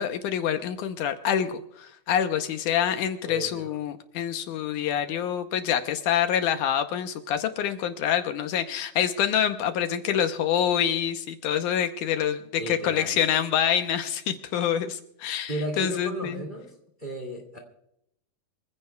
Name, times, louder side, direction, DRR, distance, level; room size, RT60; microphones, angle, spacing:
voice 1, 0.0-16.4, left 9 dB, 80° left, 8 dB, 2.2 m, -26 dB
voice 2, 3.2-3.7 12.6-13.2 15.5-16.7 17.0-17.6, right 1 dB, 15° right, 2 dB, 1.9 m, -34 dB
25.0 x 15.5 x 2.3 m, 0.76 s
omnidirectional pair, 3.8 m